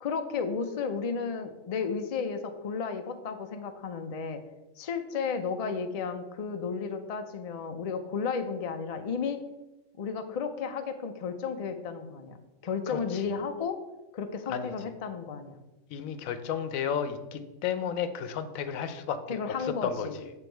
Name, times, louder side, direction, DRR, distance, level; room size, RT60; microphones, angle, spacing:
voice 1, 0.0-4.4 4.8-9.5 10.0-12.4 12.6-13.8 14.1-15.6 19.3-20.1, left 5 dB, 65° left, 7 dB, 0.3 m, -33 dB
voice 2, 12.9-13.3 14.5-14.7 15.9-20.3, left 7 dB, 85° left, 10 dB, 1.0 m, -33 dB
7.1 x 3.4 x 4.4 m, 1.0 s
omnidirectional pair, 1.4 m